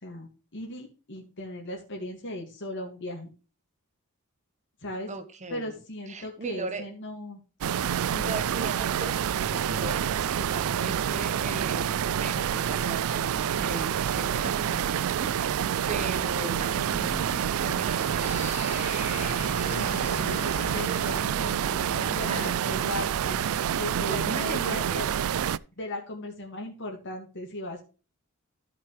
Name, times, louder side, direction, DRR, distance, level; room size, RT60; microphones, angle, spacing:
voice 1, 0.0-3.3 4.8-5.1 5.5-7.4 8.1-8.4 19.7-23.5 23.8-25.1 25.8-27.8, left 1 dB, 55° left, 1 dB, 2.2 m, -37 dB
voice 2, 5.1-5.8 6.1-6.9 8.2-11.9 12.2-19.1 22.2-22.5 24.1-25.0, right 2 dB, 35° right, 10 dB, 1.4 m, -38 dB
sound 1, 7.6-25.6, right 9 dB, 70° right, 0.4 m, -28 dB
sound 2, 16.5-21.3, left 2 dB, 30° left, 2.1 m, -40 dB
14.5 x 5.8 x 3.3 m, 0.34 s
head